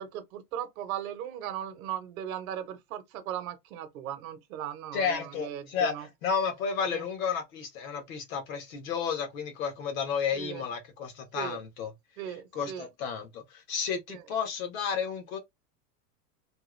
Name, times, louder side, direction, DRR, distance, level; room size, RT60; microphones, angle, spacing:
voice 1, 0.0-6.1 6.8-7.1 10.3-10.6 11.3-11.6 12.2-12.9 14.1-14.2, right 10 dB, 60° right, 0.9 m, -38 dB
voice 2, 4.9-5.9 6.2-11.9 12.5-15.4, left 6 dB, 55° left, 1.4 m, -32 dB
3.4 x 2.2 x 3.1 m
supercardioid pair, 165°, 48 cm